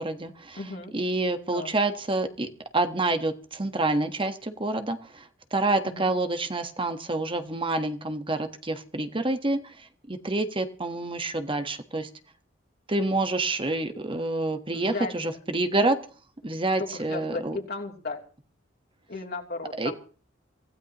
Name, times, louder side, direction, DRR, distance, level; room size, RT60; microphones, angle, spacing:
voice 1, 0.0-0.6 0.9-12.1 12.9-16.0 16.4-17.6 19.8-19.9, right 2 dB, 25° right, 8 dB, 1.3 m, -28 dB
voice 2, 0.6-0.9 1.5-1.7 5.8-6.1 14.7-15.1 16.8-18.2 19.1-19.9, left 3 dB, 55° left, 0 dB, 3.0 m, -35 dB
25.0 x 16.0 x 3.0 m, 0.40 s
head